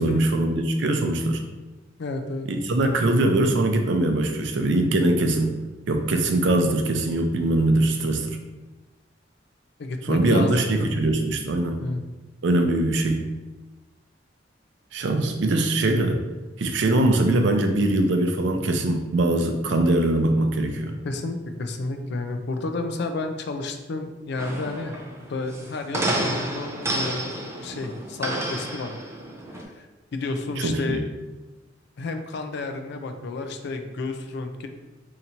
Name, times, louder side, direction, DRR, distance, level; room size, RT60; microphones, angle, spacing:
voice 1, 0.0-1.4 2.5-5.6 5.9-8.4 10.0-11.8 12.4-13.3 14.9-16.2 16.6-20.9 30.6-31.0, right 2 dB, 65° right, 5 dB, 0.5 m, -22 dB
voice 2, 2.0-2.5 9.8-11.1 11.8-12.0 21.0-25.0 25.3-28.9 29.8-29.9 30.1-31.0 32.0-34.7, left 3 dB, 65° left, 6 dB, 0.4 m, -31 dB
sound 1, 24.4-29.6, right 1 dB, 15° right, 0.4 m, -30 dB
2.8 x 2.6 x 4.2 m, 1.2 s
head